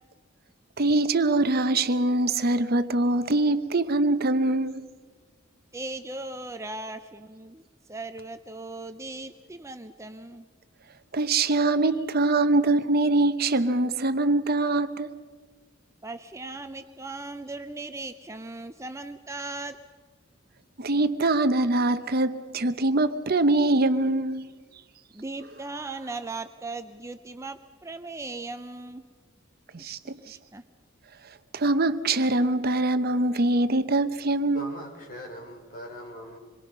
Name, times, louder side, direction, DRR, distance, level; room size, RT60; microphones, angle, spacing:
voice 1, 0.8-4.8 11.1-15.1 20.8-24.5 29.7-30.4 31.5-34.7, right 2 dB, 50° right, 0.8 m, -23 dB
voice 2, 5.7-7.6 7.9-10.5 16.0-19.8 25.1-29.0 29.8-29.9 30.2-30.6, right 2 dB, 15° right, 0.6 m, -38 dB
voice 3, 34.5-36.4, equal, 45° left, 5.2 m, -41 dB
26.5 x 22.5 x 5.5 m
head